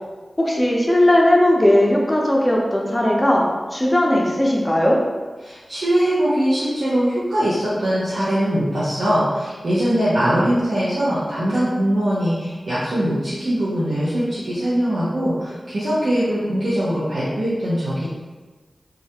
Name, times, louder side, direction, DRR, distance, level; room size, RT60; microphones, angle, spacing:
voice 1, 0.4-5.0, left 1 dB, 20° left, -2 dB, 0.6 m, -17 dB
voice 2, 5.4-18.1, equal, 75° right, -11 dB, 0.6 m, -21 dB
2.3 x 2.1 x 2.8 m, 1.3 s
cardioid pair, 45°, 0 cm